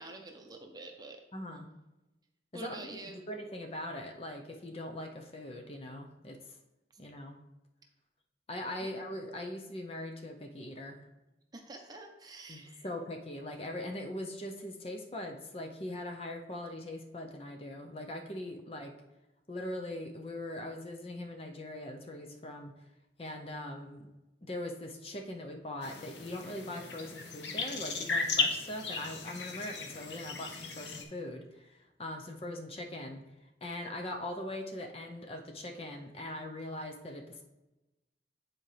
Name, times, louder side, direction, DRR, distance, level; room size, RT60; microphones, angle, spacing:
voice 1, 0.0-1.2 2.5-3.2 8.8-8.9 11.5-12.9, right 2 dB, 20° right, 3 dB, 0.7 m, -47 dB
voice 2, 1.3-1.7 2.5-6.4 7.0-7.4 8.5-11.0 12.5-18.9 19.5-22.7 23.2-24.1 24.4-33.2 33.6-37.4, left 1 dB, 35° left, 3 dB, 0.7 m, -41 dB
sound 1, 25.8-31.0, left 4 dB, 80° left, 0.9 m, -36 dB
9.7 x 4.4 x 3.3 m, 1.0 s
head